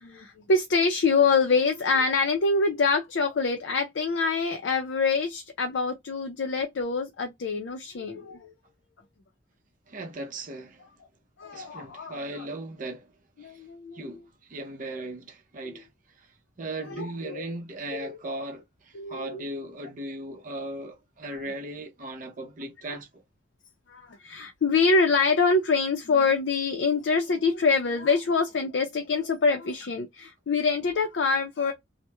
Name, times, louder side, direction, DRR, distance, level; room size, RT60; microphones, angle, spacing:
voice 1, 0.0-8.5 11.4-12.2 13.4-14.0 16.9-17.4 17.9-18.2 18.9-19.4 22.9-23.0 23.9-31.7, left 4 dB, 75° left, 0.5 m, -25 dB
voice 2, 9.9-10.9 11.5-13.1 13.4-13.6 13.9-15.9 16.2-16.3 16.6-23.2, right 1 dB, 45° right, 0.6 m, -37 dB
2.9 x 2.0 x 2.2 m
head